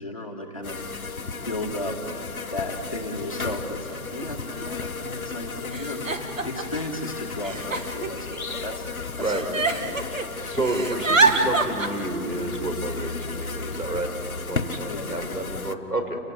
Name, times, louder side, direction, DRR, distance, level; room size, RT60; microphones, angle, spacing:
voice 1, 0.0-2.1 2.5-10.2 14.8-15.4, left 1 dB, 20° left, 0 dB, 1.6 m, -35 dB
sound 1, 0.6-15.7, left 4 dB, 65° left, 1.4 m, -34 dB
Giggle, 3.1-3.2 4.2-4.3 4.6-5.1 5.7-6.8 7.4-8.8 9.2-10.3 10.5-11.9, right 3 dB, 55° right, 1.9 m, -25 dB
voice 2, 10.4-14.1 14.5-16.2, right 2 dB, 80° right, 5 dB, 5.0 m, -30 dB
29.0 x 18.0 x 8.4 m, 2.6 s
figure-of-eight pair, 180°, 46 cm